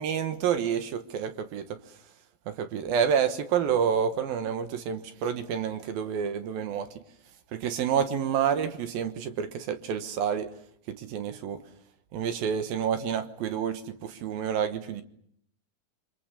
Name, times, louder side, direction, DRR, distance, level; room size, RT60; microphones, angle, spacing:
voice 1, 0.0-2.0 2.5-6.9 7.5-10.5 10.9-11.6 12.1-15.0, right 8 dB, 70° right, 3.0 m, -29 dB
29.0 x 25.0 x 6.8 m
omnidirectional pair, 4.5 m